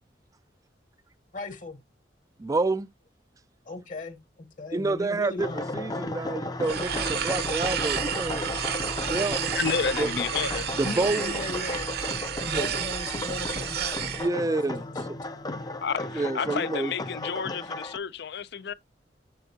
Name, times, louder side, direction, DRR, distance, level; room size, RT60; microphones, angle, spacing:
voice 1, 1.3-1.8 3.6-5.8 10.8-11.9 12.4-15.8 16.3-16.4, left 2 dB, 50° left, 1.3 m, -38 dB
voice 2, 2.4-2.9 4.7-5.5 5.7-8.4 9.1-9.4 10.0-10.1 10.8-11.3 12.5-12.7 14.2-15.2 16.1-16.9, right 2 dB, 20° right, 0.4 m, -28 dB
sound 1, 5.4-18.0, left 2 dB, 20° left, 0.6 m, -34 dB
sound 2, 6.6-14.3, right 8 dB, 60° right, 0.9 m, -31 dB
voice 3, 9.5-10.7 15.8-18.7, left 6 dB, 65° left, 0.5 m, -30 dB
7.7 x 7.4 x 2.8 m
head